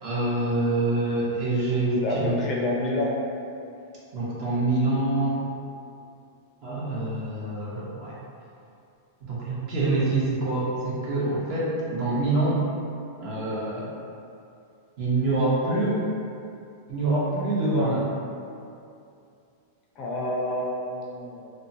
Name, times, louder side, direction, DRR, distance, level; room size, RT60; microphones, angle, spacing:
voice 1, 0.0-2.4 4.1-5.4 6.6-8.2 9.2-12.6 13.2-13.9 15.0-16.0 16.9-18.1, right 2 dB, 45° right, -7 dB, 0.9 m, -25 dB
voice 2, 2.0-3.2 20.0-21.5, left 1 dB, 35° left, -2 dB, 0.4 m, -28 dB
2.8 x 2.1 x 2.7 m, 2.6 s
hypercardioid pair, 125°, 0 cm